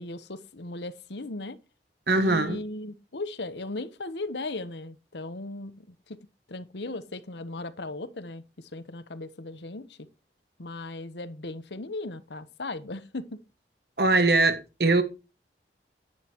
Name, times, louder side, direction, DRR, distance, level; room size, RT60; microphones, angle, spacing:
voice 1, 0.0-1.6 2.2-6.2 6.5-10.1 10.6-13.4, left 2 dB, 75° left, 1.0 m, -37 dB
voice 2, 2.1-2.6 14.0-15.0, right 2 dB, 60° right, 1.6 m, -22 dB
10.5 x 9.8 x 3.0 m
head